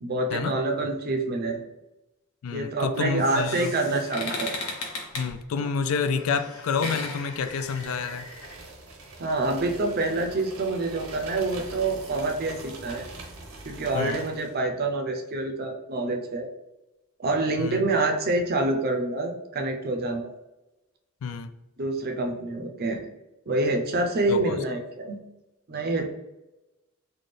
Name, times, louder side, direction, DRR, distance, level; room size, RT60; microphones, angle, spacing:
voice 1, 0.0-1.6 2.5-4.5 9.2-13.1 13.7-16.5 17.2-20.3 21.8-23.0 23.5-25.2 25.7-26.1, right 2 dB, 45° right, 4 dB, 0.5 m, -27 dB
voice 2, 2.4-3.7 5.1-8.3 13.9-14.2 17.6-17.8 21.2-21.5 24.3-24.6, left 5 dB, 70° left, 10 dB, 0.3 m, -29 dB
sound 1, 2.9-8.5, left 2 dB, 85° left, 0.9 m, -37 dB
sound 2, 7.5-14.6, right 2 dB, 85° right, 0.8 m, -43 dB
4.1 x 2.3 x 3.2 m, 0.97 s
head